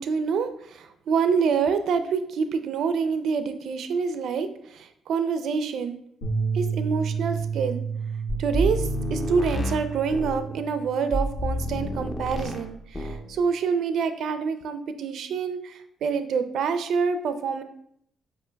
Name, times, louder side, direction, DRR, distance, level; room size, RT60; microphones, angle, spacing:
voice 1, 0.0-6.0 6.5-7.8 8.4-17.6, right 5 dB, 70° right, 9 dB, 0.4 m, -26 dB
Bass guitar, 6.2-12.5, right 6 dB, 85° left, 1.2 m, -32 dB
sound 1, 8.3-10.4 11.1-12.7 12.9-13.3, equal, 25° left, 0.6 m, -29 dB
8.1 x 2.8 x 2.3 m, 0.71 s
cardioid pair, 105°, 0 cm